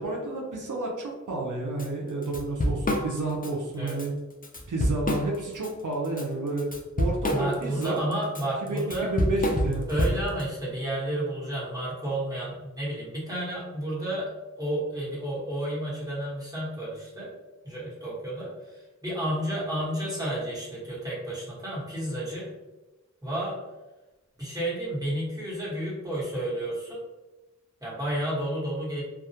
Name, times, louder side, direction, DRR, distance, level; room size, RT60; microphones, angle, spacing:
voice 1, 0.0-4.1 4.7-6.7 7.0-8.0 8.7-9.8, right 2 dB, 80° right, -2 dB, 0.5 m, -30 dB
Drum kit / Drum, 1.8-1.9 2.2-3.5 3.9-4.1 4.4-5.7 6.0-10.4, left 1 dB, 30° left, 0.4 m, -27 dB
voice 2, 7.3-9.1 9.9-14.3 14.6-17.3 17.6-22.5 23.2-23.6 24.4-27.0 27.8-29.0, right 1 dB, 10° right, -8 dB, 1.2 m, -31 dB
2.2 x 2.1 x 2.7 m, 1.1 s
wide cardioid pair, 40°, 31 cm